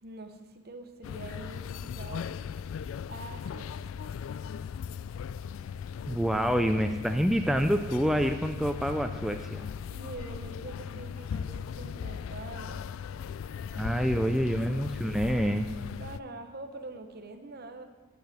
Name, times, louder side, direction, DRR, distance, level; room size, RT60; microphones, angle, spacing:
voice 1, 0.0-2.3 3.1-3.9 9.9-12.9 16.0-17.8, right 2 dB, 50° right, 7 dB, 0.9 m, -44 dB
sound 1, 1.0-16.2, left 7 dB, 85° left, 0.3 m, -38 dB
voice 2, 6.1-9.7 13.7-15.7, equal, ahead, 5 dB, 0.3 m, -27 dB
8.2 x 6.7 x 7.7 m, 1.3 s
head